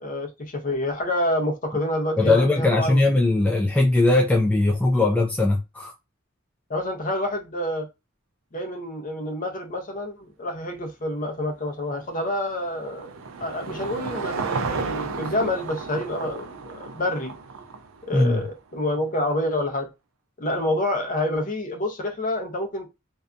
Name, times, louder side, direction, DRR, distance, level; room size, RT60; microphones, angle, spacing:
voice 1, 0.0-3.1 6.7-7.9 8.5-13.1 13.4-17.3 18.0-19.9 20.4-22.9, left 1 dB, 40° left, 0.7 m, -28 dB
voice 2, 2.2-5.9 18.1-18.4, left 2 dB, 5° left, 0.3 m, -20 dB
Car passing by / Engine, 11.9-18.4, right 4 dB, 75° right, 0.4 m, -33 dB
2.6 x 2.2 x 2.4 m
head